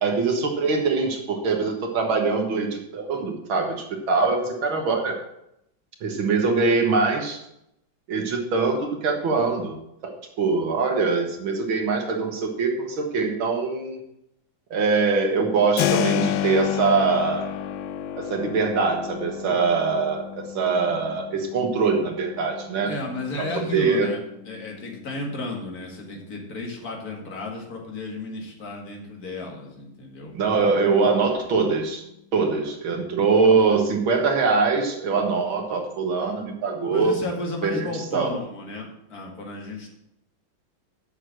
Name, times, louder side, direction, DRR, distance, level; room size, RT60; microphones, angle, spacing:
voice 1, 0.0-5.2 6.0-7.4 8.1-9.8 10.0-14.0 14.7-17.5 18.2-22.9 23.7-24.1 30.3-32.0 32.3-37.1 37.6-37.9 38.1-38.3, right 4 dB, 80° right, 3 dB, 2.3 m, -23 dB
Keyboard (musical), 15.8-26.5, left 11 dB, 80° left, 1.4 m, -31 dB
voice 2, 22.8-30.3 32.3-32.7 36.9-39.9, left 2 dB, 50° left, 0 dB, 2.4 m, -33 dB
7.7 x 6.4 x 7.6 m, 0.80 s
omnidirectional pair, 2.2 m